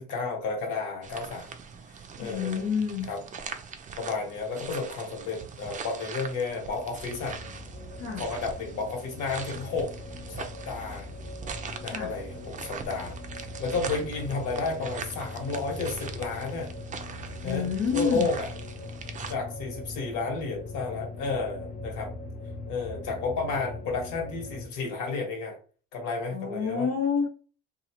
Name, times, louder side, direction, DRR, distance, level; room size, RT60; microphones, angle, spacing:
voice 1, 0.0-1.5 1.9-2.6 3.1-3.2 4.0-7.4 8.2-9.9 10.3-11.1 11.8-16.7 17.4-17.7 17.9-18.5 19.3-22.1 22.7-25.6 25.9-26.8, left 4 dB, 75° left, 0 dB, 1.3 m, -32 dB
sound 1, 1.0-19.3, right 6 dB, 25° right, 0.4 m, -42 dB
voice 2, 2.2-3.1 8.0-8.2 11.9-12.1 17.4-18.3 26.3-27.3, left 6 dB, 90° left, -6 dB, 1.0 m, -28 dB
sound 2, 6.6-24.7, left 2 dB, 25° left, 0.6 m, -41 dB
2.8 x 2.3 x 2.9 m, 0.39 s
supercardioid pair, 95°, 30 cm